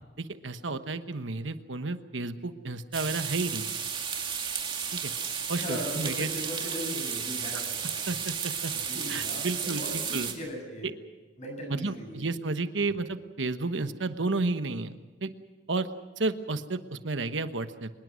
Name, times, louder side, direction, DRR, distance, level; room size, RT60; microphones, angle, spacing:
voice 1, 0.2-3.7 4.9-5.1 5.5-6.3 7.5-7.6 8.1-8.7 9.1-10.3 10.8-10.9 11.7-15.3 15.7-15.9 16.2-17.9, right 3 dB, 85° right, 10 dB, 1.2 m, -32 dB
sound 1, 2.9-10.3, right 7 dB, 25° right, 2.4 m, -33 dB
voice 2, 5.6-8.2 8.7-10.9 11.4-12.2, left 1 dB, 40° left, 2 dB, 7.5 m, -38 dB
25.0 x 21.0 x 6.4 m, 1.3 s
head